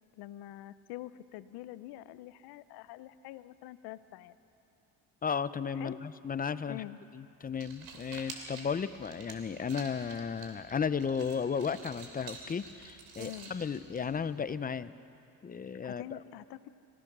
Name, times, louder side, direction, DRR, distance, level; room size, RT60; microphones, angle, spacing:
voice 1, 0.1-4.4 5.7-6.0 6.7-7.0 13.2-13.5 15.8-16.7, left 15 dB, 85° left, 15 dB, 0.8 m, -45 dB
voice 2, 5.2-6.8 7.1-14.9 15.4-16.0, left 6 dB, 25° left, 15 dB, 0.6 m, -34 dB
sound 1, 7.4-14.5, right 4 dB, 85° right, 3.0 m, -49 dB
26.5 x 16.5 x 6.1 m, 2.8 s
cardioid pair, 90°, 37 cm